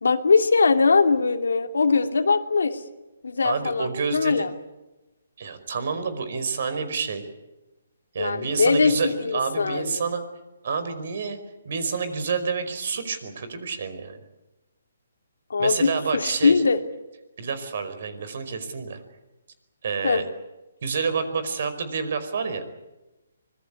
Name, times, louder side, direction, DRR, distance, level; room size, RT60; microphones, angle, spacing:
voice 1, 0.0-2.8 3.2-4.5 8.2-10.0 15.5-16.8 20.0-20.2, left 4 dB, 90° left, 6 dB, 2.6 m, -21 dB
voice 2, 3.4-4.5 5.4-7.3 8.1-10.2 10.6-11.4 11.6-14.2 15.6-16.5 17.4-19.0 19.8-20.2 20.8-22.6, right 5 dB, 55° right, 11 dB, 5.0 m, -28 dB
25.5 x 21.5 x 8.4 m, 1.0 s
hypercardioid pair, 160°, 0 cm